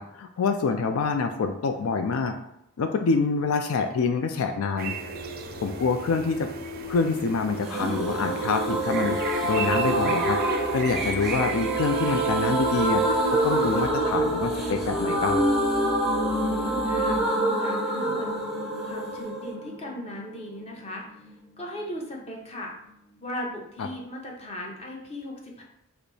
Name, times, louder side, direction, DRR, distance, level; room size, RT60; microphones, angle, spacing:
voice 1, 0.0-2.3 2.8-4.9 5.6-6.5 6.9-10.4 10.7-13.0 13.3-15.4, left 4 dB, 90° left, 6 dB, 0.4 m, -26 dB
sound 1, 4.8-17.3, equal, 70° left, 0.9 m, -39 dB
sound 2, 4.8-13.9, right 5 dB, 45° right, 0.4 m, -37 dB
sound 3, 7.7-21.3 21.5-21.6 21.9-22.0, right 1 dB, ahead, 0.6 m, -26 dB
voice 2, 16.3-18.3 18.8-21.1 21.6-22.7 23.2-25.6, left 1 dB, 30° left, -1 dB, 0.9 m, -37 dB
5.0 x 2.1 x 4.7 m, 0.77 s
head